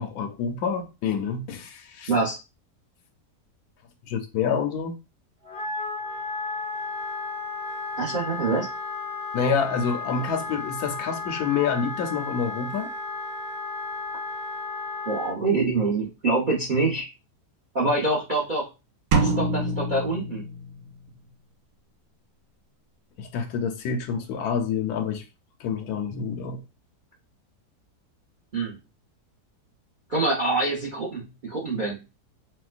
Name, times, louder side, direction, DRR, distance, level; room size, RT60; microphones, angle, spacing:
voice 1, 0.0-2.2 4.0-5.0 9.3-12.9 23.2-25.2 25.6-26.6, left 6 dB, 70° left, 1.1 m, -27 dB
Wind instrument woodwind instrument, 5.4-15.3, left 3 dB, 5° left, 0.4 m, -33 dB
voice 2, 8.0-8.7 15.1-17.1 17.7-18.7 19.1-20.4 28.5-28.7 30.1-32.0, right 3 dB, 40° right, 0.7 m, -25 dB
sound 1, 19.1-21.1, right 3 dB, 70° right, 1.1 m, -26 dB
4.3 x 2.1 x 2.4 m
omnidirectional pair, 1.8 m